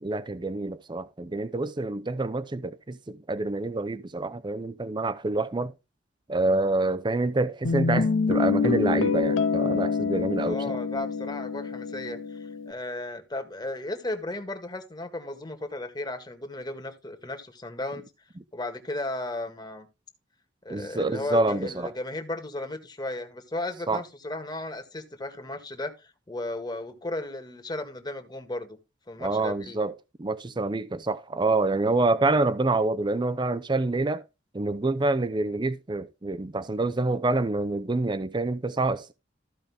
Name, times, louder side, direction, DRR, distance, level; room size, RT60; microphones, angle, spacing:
voice 1, 0.0-5.7 6.3-10.8 20.7-21.9 23.9-24.0 29.2-29.9 30.2-34.2 34.5-39.1, right 2 dB, 25° right, 0.6 m, -27 dB
Guitar, 7.6-12.7, left 5 dB, 90° left, 0.8 m, -26 dB
voice 2, 10.4-18.1 18.5-19.9 20.7-28.8 29.1-29.8, left 2 dB, 20° left, 1.7 m, -35 dB
14.5 x 5.2 x 3.5 m
head